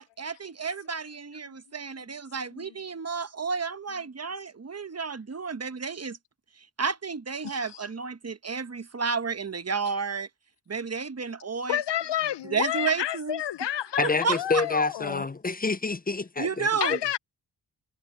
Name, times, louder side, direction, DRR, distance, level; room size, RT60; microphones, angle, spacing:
voice 1, 0.0-6.2 6.6-10.3 10.7-11.8 12.4-13.4 14.2-14.6 16.4-17.0, right 5 dB, 35° right, 1.1 m, -31 dB
voice 2, 11.7-15.2 16.8-17.2, left 12 dB, 65° left, 0.7 m, -30 dB
voice 3, 14.0-17.0, left 3 dB, 20° left, 0.6 m, -28 dB
cardioid pair, 65°, 45 cm